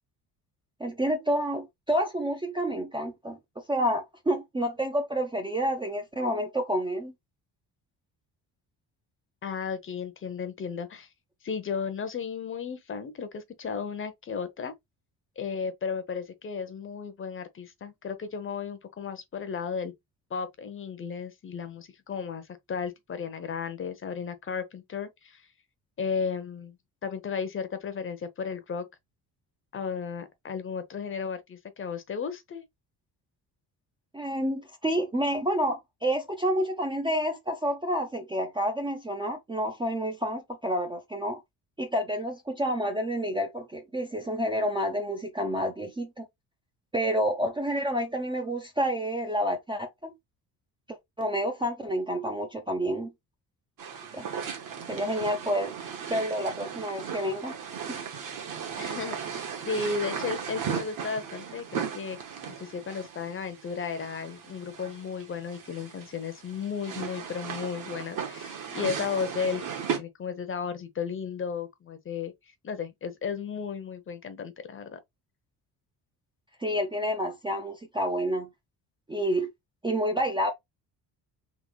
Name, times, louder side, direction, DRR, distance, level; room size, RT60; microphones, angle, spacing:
voice 1, 0.8-7.1 34.1-41.4 41.8-46.3 46.9-50.1 50.9-53.1 54.1-54.3 54.9-55.7 56.1-57.5 57.9-58.0 76.6-78.5 79.1-79.5 79.8-80.5, equal, 15° right, 0.5 m, -29 dB
voice 2, 9.4-11.1 11.4-14.7 15.4-19.9 20.3-25.4 26.0-26.8 27.0-28.9 29.7-32.6 58.8-62.2 62.5-69.6 70.0-72.3 72.6-75.0, left 6 dB, 30° left, 0.7 m, -34 dB
sound 1, 53.8-70.0, right 7 dB, 55° right, 1.3 m, -37 dB
3.8 x 3.4 x 3.2 m
cardioid pair, 155°, 40 cm